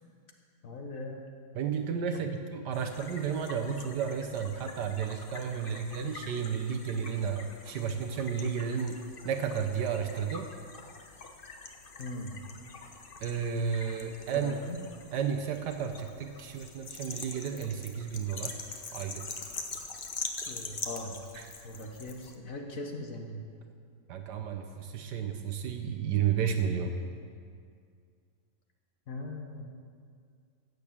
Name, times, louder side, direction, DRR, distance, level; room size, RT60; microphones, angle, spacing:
voice 1, 0.6-1.3 2.1-2.2 12.0-12.4 14.3-14.8 20.5-21.2 21.6-23.4 29.1-29.7, left 2 dB, 55° left, 3 dB, 1.5 m, -40 dB
voice 2, 1.5-9.0 9.2-10.5 13.2-14.6 15.1-18.6 18.9-19.3 21.3-21.5 24.1-27.0, right 7 dB, 75° right, 5 dB, 1.4 m, -32 dB
sound 1, 2.7-22.4, left 4 dB, 40° left, 0.9 m, -44 dB
15.0 x 6.7 x 8.6 m, 2.2 s
omnidirectional pair, 1.9 m